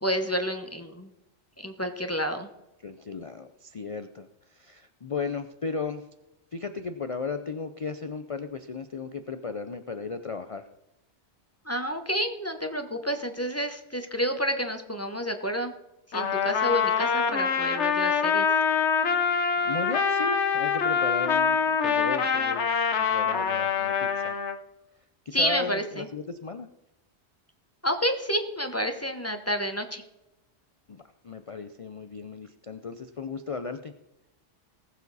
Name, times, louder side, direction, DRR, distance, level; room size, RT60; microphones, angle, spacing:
voice 1, 0.0-1.1 1.6-2.5 11.7-15.7 16.1-18.5 25.3-26.1 27.8-30.0, equal, 15° left, 6 dB, 1.0 m, -29 dB
voice 2, 2.8-6.0 6.5-10.7 19.6-24.4 25.3-26.7 30.9-31.0 31.2-33.9, left 4 dB, 40° left, 9 dB, 0.5 m, -35 dB
Trumpet, 16.1-24.6, left 6 dB, 75° left, 1.3 m, -25 dB
19.5 x 7.2 x 4.1 m, 0.95 s
omnidirectional pair, 1.2 m